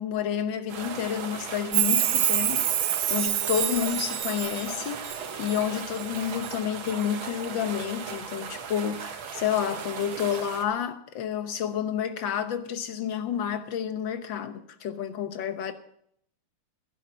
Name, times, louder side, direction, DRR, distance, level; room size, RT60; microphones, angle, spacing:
voice 1, 0.0-15.7, left 9 dB, 65° left, 1.7 m, -30 dB
sound 1, 0.7-10.6, right 6 dB, 65° right, 1.9 m, -37 dB
Chime, 1.7-5.6 6.0-6.5 6.9-7.0, right 11 dB, 85° right, 1.7 m, -27 dB
12.0 x 11.0 x 6.3 m
omnidirectional pair, 2.4 m